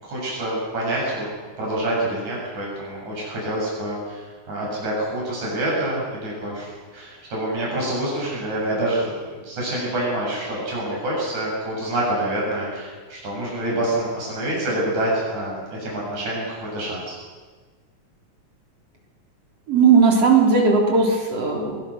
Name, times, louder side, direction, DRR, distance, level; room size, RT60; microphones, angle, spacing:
voice 1, 0.0-1.3 1.6-9.1 9.4-17.2, right 1 dB, 70° right, -4 dB, 8.8 m, -27 dB
voice 2, 19.7-21.8, right 5 dB, 50° right, -1 dB, 4.9 m, -17 dB
24.0 x 22.5 x 6.4 m, 1.5 s
omnidirectional pair, 3.5 m